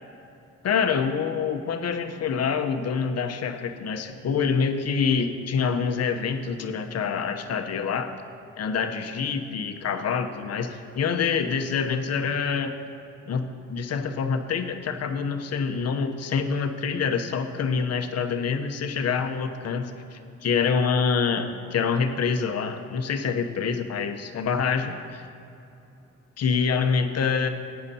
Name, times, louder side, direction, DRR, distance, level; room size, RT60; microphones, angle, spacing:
voice 1, 0.6-8.2 8.6-12.7 13.3-25.2 26.4-27.5, left 6 dB, 55° left, 6 dB, 0.9 m, -26 dB
17.5 x 9.6 x 2.8 m, 2.7 s
cardioid pair, 90°, 30 cm